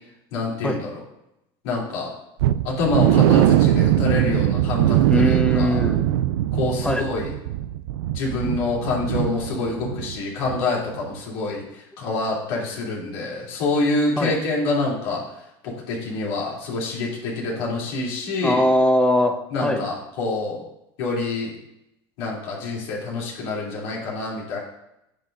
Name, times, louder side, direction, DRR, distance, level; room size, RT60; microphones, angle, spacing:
voice 1, 0.3-1.0 1.6-2.1 2.6-5.9 6.5-7.3 8.1-15.2 15.6-18.7 19.5-20.6 21.0-21.5 22.2-24.6, left 3 dB, 75° left, -4 dB, 3.1 m, -26 dB
sound 1, 2.4-10.2 10.4-10.6 11.0-11.1, right 12 dB, 80° right, 0.4 m, -21 dB
voice 2, 5.1-6.0 6.8-7.1 14.2-14.3 17.5-17.6 18.4-19.8, equal, 5° left, 5 dB, 1.1 m, -21 dB
10.0 x 6.8 x 2.6 m, 0.85 s
hypercardioid pair, 90°, 13 cm